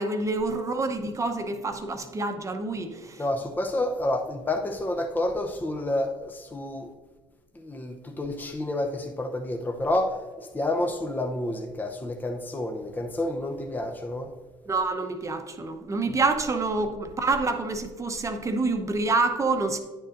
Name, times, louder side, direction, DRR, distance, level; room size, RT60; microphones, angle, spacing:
voice 1, 0.0-3.2 14.7-19.8, right 3 dB, 25° right, 0.9 m, -27 dB
voice 2, 3.2-6.9 7.5-10.2 10.5-14.3, left 1 dB, 15° left, 0.7 m, -29 dB
10.0 x 6.6 x 2.6 m
supercardioid pair, 85°, 12 cm